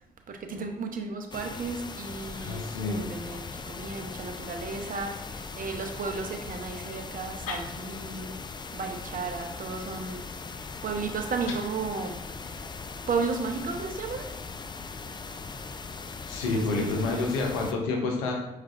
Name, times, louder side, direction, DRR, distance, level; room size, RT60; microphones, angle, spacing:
voice 1, 0.3-8.4 8.7-10.3 10.8-12.6 13.1-14.3 16.5-17.2, right 4 dB, 45° right, 4 dB, 0.7 m, -34 dB
sound 1, 1.3-17.7, left 4 dB, 25° left, 0.3 m, -40 dB
voice 2, 2.3-3.1 7.5-7.6 16.3-18.3, left 3 dB, 85° left, 1 dB, 0.6 m, -29 dB
4.7 x 3.2 x 2.4 m, 0.91 s
hypercardioid pair, 40°, 19 cm